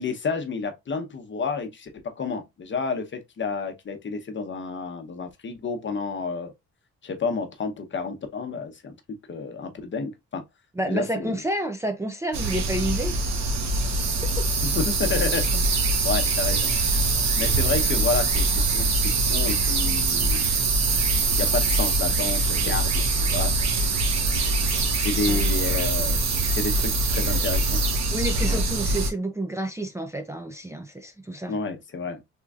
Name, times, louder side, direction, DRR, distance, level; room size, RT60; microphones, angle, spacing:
voice 1, 0.0-1.9 2.2-6.5 7.0-8.9 9.3-10.4 10.9-11.3 14.6-15.6 16.0-16.7 17.4-20.5 21.4-23.7 24.9-26.2 26.5-27.8 28.4-28.6 31.5-32.2, left 4 dB, 40° left, 0.9 m, -30 dB
voice 2, 10.8-13.2 14.4-14.5 25.3-25.5 28.1-31.6, right 1 dB, 10° right, 0.4 m, -29 dB
sound 1, 12.3-29.1, right 3 dB, 60° right, 1.1 m, -23 dB
3.5 x 3.0 x 2.4 m
cardioid pair, 90°, 30 cm